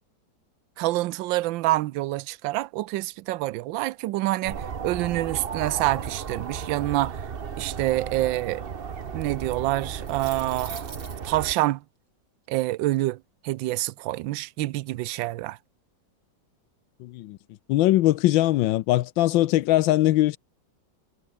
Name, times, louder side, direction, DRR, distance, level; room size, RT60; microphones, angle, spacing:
voice 1, 0.8-7.2 7.6-8.6 9.1-10.9 11.2-11.8 12.5-13.2 13.4-15.6, right 17 dB, 80° right, 1.4 m, -27 dB
sound 1, 4.4-11.5, right 6 dB, 40° right, 0.9 m, -35 dB
sound 2, 10.0-11.4, right 4 dB, 60° right, 3.8 m, -42 dB
voice 2, 17.0-17.4 17.7-20.4, left 15 dB, 85° left, 1.4 m, -21 dB
omnidirectional pair, 2.1 m